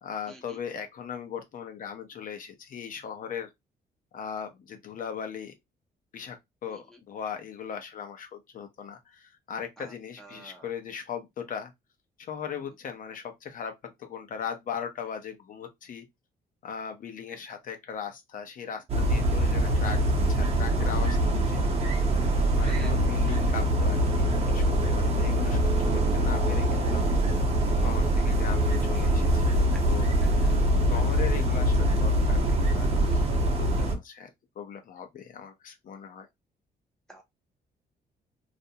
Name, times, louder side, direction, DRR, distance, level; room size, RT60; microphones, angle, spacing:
voice 1, 0.0-3.5 4.1-5.5 6.1-6.4 6.6-11.7 12.2-16.0 16.6-21.7 22.5-27.2 27.8-29.6 29.9-30.1 30.9-34.3 34.6-36.3, left 7 dB, 55° left, 0.6 m, -39 dB
voice 2, 10.2-10.7 22.5-22.9 30.2-30.5 33.0-33.4 37.1-37.2, right 2 dB, 5° left, 0.5 m, -47 dB
sound 1, 18.9-33.9, right 1 dB, 40° right, 0.7 m, -24 dB
2.5 x 2.1 x 2.7 m
cardioid pair, 120°, 16 cm